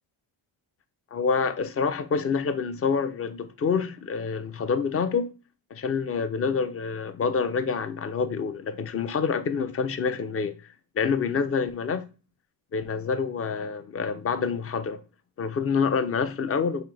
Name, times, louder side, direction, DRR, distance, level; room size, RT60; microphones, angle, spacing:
voice 1, 1.1-5.3 5.7-10.5 11.0-12.0 12.7-15.0 15.4-16.8, left 5 dB, 30° left, 0.5 m, -27 dB
3.4 x 2.8 x 3.9 m
cardioid pair, 70°, 49 cm